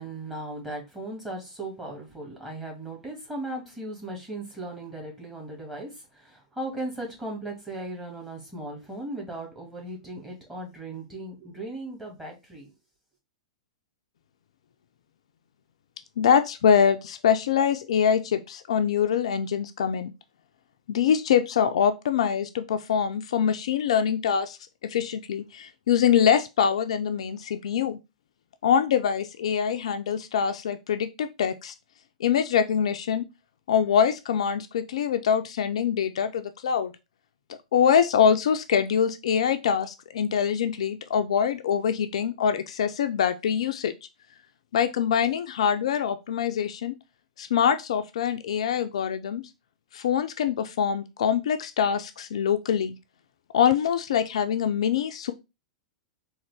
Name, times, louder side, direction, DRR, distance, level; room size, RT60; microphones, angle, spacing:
voice 1, 0.0-12.7, right 1 dB, 10° right, 1.6 m, -37 dB
voice 2, 16.2-20.1 20.9-24.6 24.8-28.0 28.6-31.7 32.2-33.2 33.7-36.9 37.5-43.9 44.7-46.9 47.4-49.4 49.9-53.0 53.5-55.3, left 8 dB, 60° left, 0.3 m, -24 dB
3.7 x 2.5 x 3.3 m
figure-of-eight pair, 95°, 4 cm